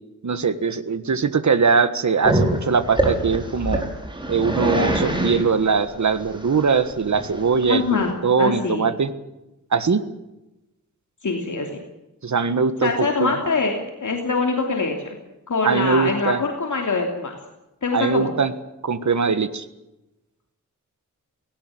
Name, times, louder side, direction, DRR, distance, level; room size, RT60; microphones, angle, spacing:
voice 1, 0.2-3.8 4.3-9.1 9.7-10.0 12.2-12.9 13.2-13.3 15.6-16.4 17.9-18.5 18.8-19.6, right 5 dB, 60° right, 12 dB, 1.6 m, -21 dB
Growling, 2.2-8.1, right 1 dB, 15° right, 5.0 m, -25 dB
voice 2, 7.7-8.1 8.4-8.9 11.2-11.8 12.8-15.1 15.5-17.3 17.8-18.3, left 4 dB, 65° left, 2 dB, 3.1 m, -24 dB
18.5 x 18.5 x 9.0 m, 0.95 s
wide cardioid pair, 120°, 32 cm